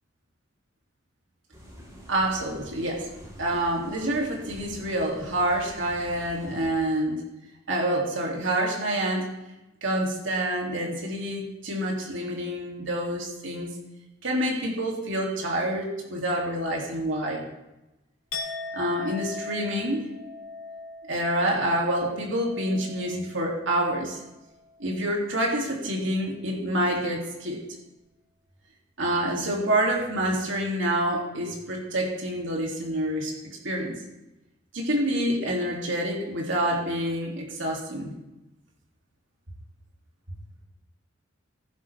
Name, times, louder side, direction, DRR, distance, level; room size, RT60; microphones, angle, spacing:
sound 1, 1.5-6.7, equal, 20° right, 3.3 m, -46 dB
voice 1, 2.1-3.1 3.4-7.2 7.7-9.3 9.8-13.7 14.2-17.5 18.7-20.0 21.1-24.2 24.8-27.6 29.0-34.0 34.7-38.2, right 1 dB, 65° right, -1 dB, 2.8 m, -27 dB
Chink clink, 18.3-24.2 24.5-24.9, left 3 dB, 85° left, 2.2 m, -40 dB
14.5 x 11.5 x 3.5 m, 0.98 s
head